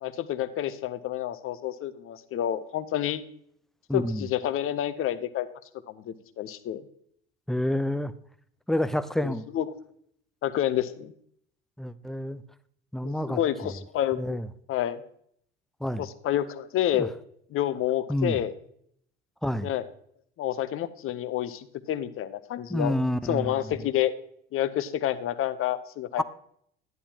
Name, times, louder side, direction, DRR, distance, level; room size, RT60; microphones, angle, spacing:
voice 1, 0.0-3.2 3.9-5.5 5.9-6.8 9.2-9.7 10.4-11.1 13.0-14.4 14.7-15.1 16.0-17.1 17.5-18.5 19.6-19.9 20.4-22.9 23.3-24.1 24.5-26.2, left 11 dB, 45° left, 13 dB, 0.8 m, -29 dB
voice 2, 3.9-4.3 7.5-8.1 8.7-9.5 11.8-12.4 12.9-13.7 14.1-14.5 15.8-16.0 16.9-17.1 18.1-18.4 19.4-19.7 22.7-23.5 26.2-26.3, left 1 dB, ahead, 14 dB, 0.4 m, -28 dB
10.5 x 10.0 x 2.8 m, 0.67 s
hypercardioid pair, 70°, 30 cm